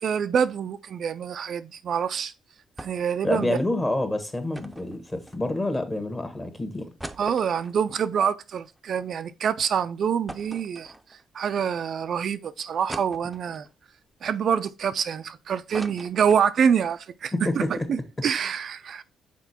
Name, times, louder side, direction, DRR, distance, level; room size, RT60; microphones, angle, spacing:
voice 1, 0.0-2.3 2.8-3.6 7.2-10.9 11.3-13.7 14.2-17.6 17.9-19.0, right 7 dB, 60° right, 0.4 m, -26 dB
sound 1, 2.8-3.2 3.5-3.6 4.5-5.8 6.3-6.4 6.7-9.2 9.6-9.7 10.3-11.4 11.9-12.0 12.9-13.7 14.3-15.3 15.5-16.9 17.2-17.3 17.5-17.8, right 1 dB, 10° right, 0.6 m, -42 dB
voice 2, 3.2-6.9 17.3-17.9, left 1 dB, 20° left, 1.3 m, -27 dB
6.0 x 4.4 x 4.2 m
cardioid pair, 90°, 0 cm